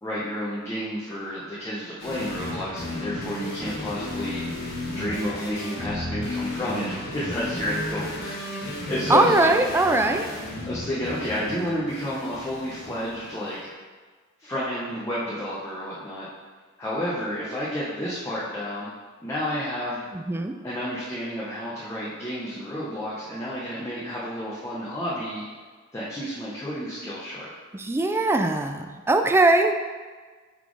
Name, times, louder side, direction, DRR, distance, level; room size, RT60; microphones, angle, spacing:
voice 1, 0.0-4.5 4.9-9.5 10.7-13.7 14.4-16.3 16.8-18.9 19.2-20.0 20.6-25.4 25.9-27.5, equal, 15° left, -8 dB, 0.9 m, -31 dB
sound 1, 2.0-13.5, left 1 dB, 50° left, 1.4 m, -34 dB
voice 2, 9.1-10.3 20.1-20.5 27.7-29.7, right 2 dB, 10° right, 6 dB, 0.3 m, -21 dB
5.6 x 4.1 x 4.7 m, 1.4 s
head